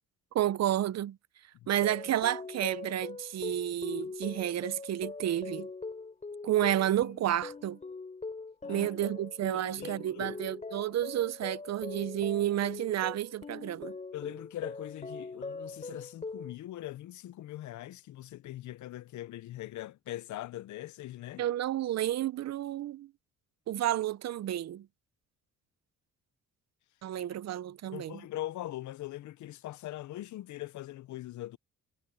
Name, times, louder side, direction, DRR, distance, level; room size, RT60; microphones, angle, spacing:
voice 1, 0.3-1.2 1.7-5.7 6.4-7.8 8.7-13.9 21.4-23.1 23.7-24.9 27.0-28.2, right 12 dB, 60° right, 0.8 m, -31 dB
sound 1, 1.8-16.5, left 3 dB, 25° left, 4.2 m, -42 dB
voice 2, 9.5-10.4 14.1-21.5 27.9-31.6, left 14 dB, 70° left, 0.8 m, -41 dB
cardioid pair, 90°, 30 cm